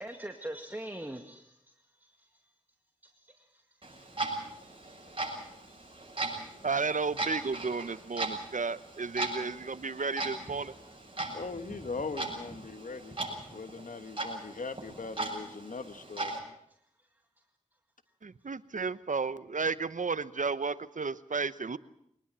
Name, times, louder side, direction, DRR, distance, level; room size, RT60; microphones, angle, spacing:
voice 1, 0.0-1.6 2.0-2.3 3.0-5.0 5.7-5.9, right 1 dB, 15° right, 4 dB, 2.0 m, -44 dB
Clock, 3.8-16.4, right 2 dB, 40° right, 7.1 m, -39 dB
voice 2, 6.6-10.7 18.2-21.8, right 4 dB, 75° right, 15 dB, 1.0 m, -33 dB
voice 3, 11.3-13.2 13.5-16.4, left 4 dB, 85° left, 10 dB, 1.5 m, -40 dB
23.5 x 20.0 x 7.5 m, 0.74 s
wide cardioid pair, 50°, 13 cm